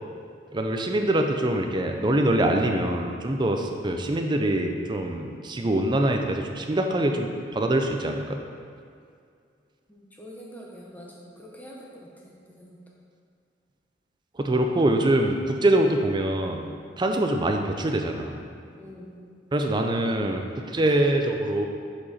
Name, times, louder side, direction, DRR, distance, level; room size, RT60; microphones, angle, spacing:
voice 1, 0.5-8.4 14.4-16.7 17.0-18.4 19.5-21.7, right 1 dB, 25° right, 3 dB, 0.5 m, -24 dB
voice 2, 9.9-12.8 18.7-19.2, equal, 10° left, -3 dB, 1.0 m, -45 dB
7.4 x 4.8 x 4.3 m, 2.3 s
head